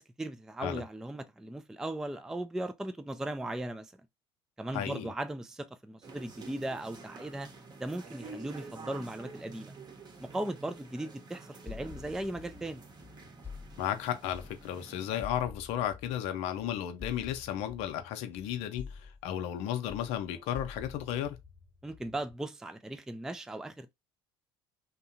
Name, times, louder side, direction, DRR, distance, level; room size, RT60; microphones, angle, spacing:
voice 1, 0.0-3.9 4.6-7.5 7.8-9.8 10.2-12.8 21.8-23.9, right 1 dB, 5° right, 0.3 m, -38 dB
voice 2, 4.7-5.1 13.8-21.4, left 10 dB, 65° left, 0.6 m, -34 dB
sound 1, 6.0-15.2, right 3 dB, 35° right, 0.8 m, -49 dB
sound 2, 11.7-14.8 15.2-19.6 19.9-22.3, left 5 dB, 15° left, 0.9 m, -48 dB
2.7 x 2.2 x 2.6 m
hypercardioid pair, 70°, 12 cm